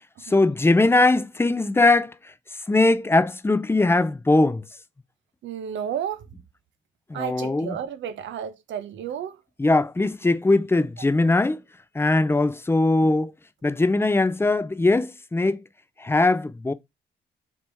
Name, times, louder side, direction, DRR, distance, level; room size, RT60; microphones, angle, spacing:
voice 1, 0.3-2.1 2.7-4.6 7.1-7.8 9.6-11.6 12.0-13.3 13.6-15.6 16.0-16.7, left 2 dB, 10° left, 0.4 m, -20 dB
voice 2, 5.4-6.2 7.1-9.4, right 9 dB, 75° right, 0.6 m, -32 dB
3.4 x 2.9 x 4.5 m
supercardioid pair, 65°, 19 cm